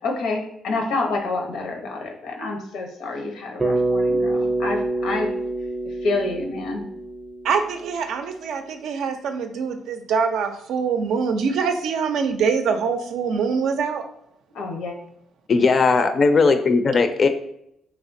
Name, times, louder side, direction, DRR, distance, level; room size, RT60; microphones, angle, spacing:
voice 1, 0.0-5.3 6.0-6.9 14.5-14.9, left 3 dB, 90° left, 2 dB, 0.7 m, -28 dB
Bass guitar, 3.6-8.0, right 2 dB, 20° right, 0.5 m, -26 dB
voice 2, 7.4-14.0, right 5 dB, 80° right, 7 dB, 0.4 m, -24 dB
voice 3, 15.5-17.3, left 4 dB, 45° left, 9 dB, 0.4 m, -17 dB
3.5 x 3.1 x 2.6 m, 0.76 s
cardioid pair, 90°, 0 cm